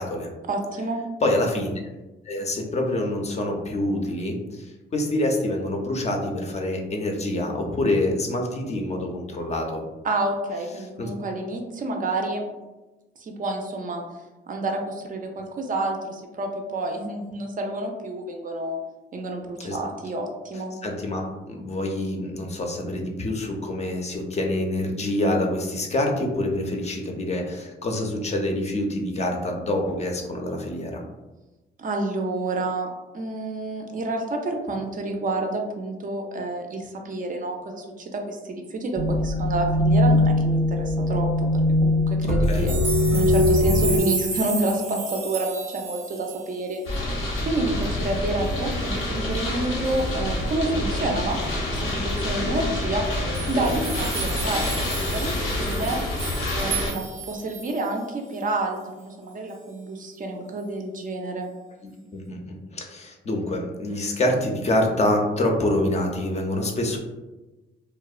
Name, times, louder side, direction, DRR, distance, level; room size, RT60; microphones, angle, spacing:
voice 1, 0.5-1.0 10.0-12.4 13.2-14.0 14.5-18.8 19.1-20.8 31.8-41.5 41.8-42.7 43.1-46.8 47.4-51.4 51.7-53.0 53.5-54.6 54.9-55.3 55.6-56.0 56.5-61.5, right 2 dB, 40° right, 2 dB, 0.4 m, -29 dB
voice 2, 1.2-1.7 2.2-9.9 11.0-11.1 19.6-19.8 20.8-21.2 21.5-31.0 42.5-42.7 62.1-67.0, left 1 dB, 35° left, 1 dB, 0.5 m, -26 dB
sound 1, 39.0-44.0, left 1 dB, ahead, 0.7 m, -20 dB
sound 2, 42.5-47.0 47.4-47.5 47.8-47.9 48.3-48.8 49.8-50.1 51.7-51.8 52.1-52.2 53.1-57.9 58.4-58.5, right 4 dB, 85° right, 0.7 m, -33 dB
sound 3, 46.9-56.9, left 1 dB, 85° left, 0.7 m, -27 dB
2.7 x 2.0 x 2.3 m, 1.1 s
cardioid pair, 90°, 20 cm